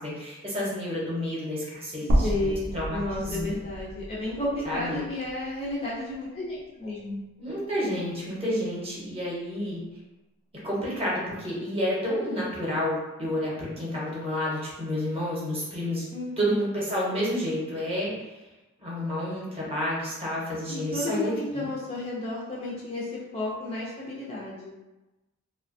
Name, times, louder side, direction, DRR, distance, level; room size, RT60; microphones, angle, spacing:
voice 1, 0.0-2.3 2.7-3.5 4.6-5.0 7.4-9.8 10.6-16.0 16.4-18.1 18.8-21.7, equal, 25° right, -6 dB, 0.8 m, -30 dB
sound 1, 2.1-6.2 6.6-6.7 8.1-8.2, equal, 80° right, 0.4 m, -30 dB
voice 2, 2.2-7.2 16.1-16.6 20.7-24.7, left 2 dB, 25° left, -5 dB, 0.4 m, -32 dB
2.7 x 2.2 x 2.5 m, 1.1 s
head